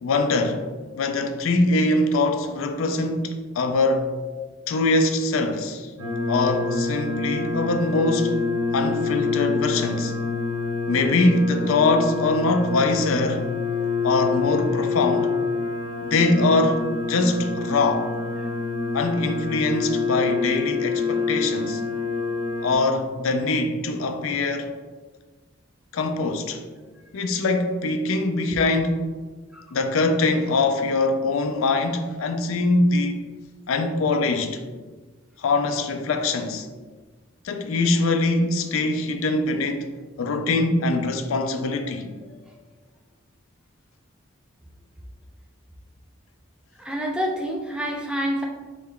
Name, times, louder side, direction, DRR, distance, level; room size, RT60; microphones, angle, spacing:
voice 1, 0.0-0.6 1.0-4.1 4.7-5.9 6.3-8.4 8.7-10.1 10.9-13.4 14.0-15.3 16.0-18.1 18.9-21.8 22.6-24.7 25.9-26.6 27.1-29.0 29.7-33.2 33.7-34.6 35.4-36.7 37.4-39.9 40.2-42.1, left 2 dB, 90° left, 0.4 m, -23 dB
sound 1, 6.0-22.7, left 4 dB, 85° right, 1.0 m, -27 dB
voice 2, 42.2-42.5 46.8-48.5, equal, 5° right, 0.3 m, -28 dB
3.9 x 2.3 x 3.6 m
head